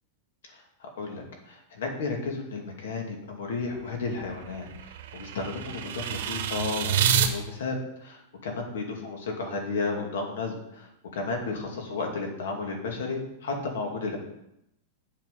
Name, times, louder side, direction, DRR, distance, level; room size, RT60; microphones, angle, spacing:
voice 1, 0.4-14.2, left 3 dB, 90° left, 1 dB, 2.7 m, -33 dB
sound 1, 3.7-7.3, right 8 dB, 65° right, 1.3 m, -28 dB
9.2 x 7.3 x 5.6 m, 0.82 s
supercardioid pair, 175°, 0 cm